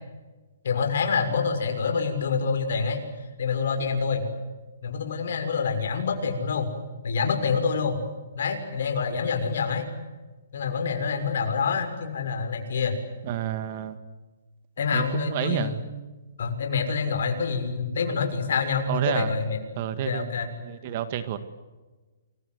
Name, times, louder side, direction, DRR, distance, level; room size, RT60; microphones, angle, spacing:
voice 1, 0.6-3.0 3.4-4.2 4.8-6.7 7.0-8.0 8.3-9.8 10.5-12.9 14.8-15.8 16.4-19.6 20.0-20.5, left 5 dB, 65° left, 5 dB, 6.5 m, -26 dB
voice 2, 13.2-14.0 14.9-15.8 18.9-19.3 19.8-20.3 20.6-21.4, right 11 dB, 40° right, 11 dB, 1.9 m, -29 dB
29.0 x 23.0 x 8.1 m, 1.2 s
hypercardioid pair, 160°, 0 cm